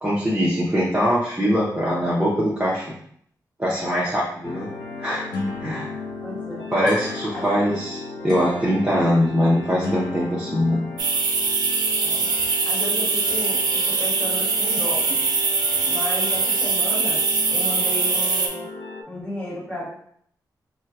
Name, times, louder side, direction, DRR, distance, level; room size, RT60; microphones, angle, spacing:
voice 1, 0.0-2.8 3.6-4.7 5.0-5.2 5.6-5.9 6.7-8.0 8.2-10.8, equal, 15° right, -8 dB, 0.7 m, -22 dB
sound 1, 4.4-19.0, left 3 dB, 80° left, 0.5 m, -35 dB
voice 2, 6.2-6.7 7.3-7.6 12.0-12.3 12.6-15.1 15.8-17.2 17.5-18.7 19.1-19.9, left 1 dB, 20° left, -5 dB, 1.5 m, -33 dB
sound 2, 11.0-18.5, right 4 dB, 75° right, 0.5 m, -22 dB
3.6 x 2.2 x 2.7 m, 0.64 s
cardioid pair, 85°, 7 cm